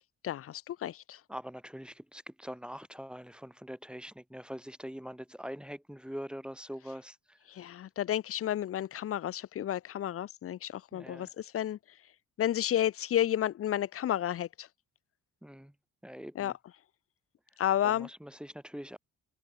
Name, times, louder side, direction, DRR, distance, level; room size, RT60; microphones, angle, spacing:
voice 1, 0.2-1.2 7.5-11.8 12.4-14.7 16.4-16.5 17.6-18.1, left 11 dB, 50° left, 0.6 m, -31 dB
voice 2, 1.3-7.4 10.9-11.3 15.4-15.7 16.0-16.5 17.8-19.0, equal, 5° right, 1.5 m, -43 dB
cardioid pair, 90°, 30 cm